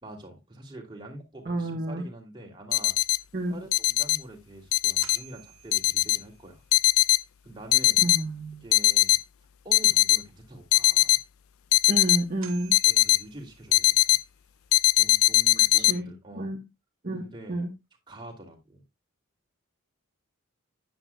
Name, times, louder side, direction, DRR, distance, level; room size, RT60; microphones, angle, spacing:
voice 1, 0.0-3.0 3.5-6.6 7.4-8.0 8.6-9.2 9.6-11.2 12.8-14.2 15.0-16.5 17.2-17.6 18.1-18.8, right 1 dB, 20° right, 2.8 m, -45 dB
voice 2, 1.4-2.1 3.3-3.6 8.0-8.6 11.9-12.8 15.8-16.6 17.0-17.7, right 1 dB, 40° right, 1.3 m, -30 dB
sound 1, 2.7-3.2 3.7-4.2 4.7-5.2 5.7-6.2 6.7-7.2 7.7-8.2 8.7-9.2 9.7-10.2 10.7-11.2 11.7-12.2 12.7-13.2 13.7-14.2 14.7-15.9, left 16 dB, 75° left, 0.5 m, -20 dB
sound 2, 3.6-3.7 4.2-4.3 5.0-6.6 11.7-11.8 12.4-14.1, right 10 dB, 65° right, 1.7 m, -50 dB
9.9 x 9.7 x 2.3 m
head